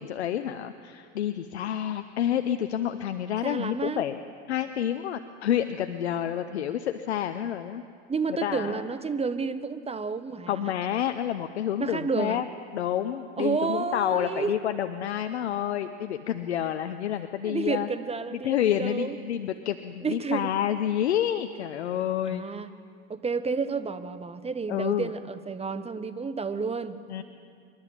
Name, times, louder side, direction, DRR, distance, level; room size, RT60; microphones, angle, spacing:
voice 1, 0.0-4.2 4.5-7.8 8.4-8.8 10.5-12.5 12.7-17.9 18.3-22.5 24.7-25.1 27.1-27.2, left 10 dB, 90° left, 9 dB, 0.8 m, -29 dB
voice 2, 3.4-4.0 8.1-10.7 11.8-12.4 13.4-14.5 17.4-19.2 20.0-20.5 22.3-22.7 23.1-27.0, right 5 dB, 20° right, 12 dB, 1.2 m, -30 dB
25.5 x 11.5 x 9.0 m, 2.3 s
hypercardioid pair, 85°, 32 cm